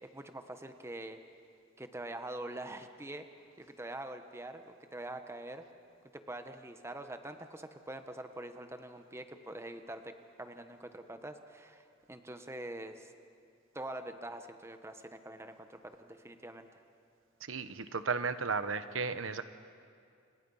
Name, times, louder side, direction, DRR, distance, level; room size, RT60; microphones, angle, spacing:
voice 1, 0.0-1.2 1.8-5.6 6.1-10.1 10.4-13.1 13.7-16.8, right 1 dB, 15° right, 7 dB, 1.2 m, -44 dB
voice 2, 17.5-19.4, right 5 dB, 85° right, 11 dB, 1.0 m, -34 dB
30.0 x 28.0 x 5.6 m, 2.3 s
head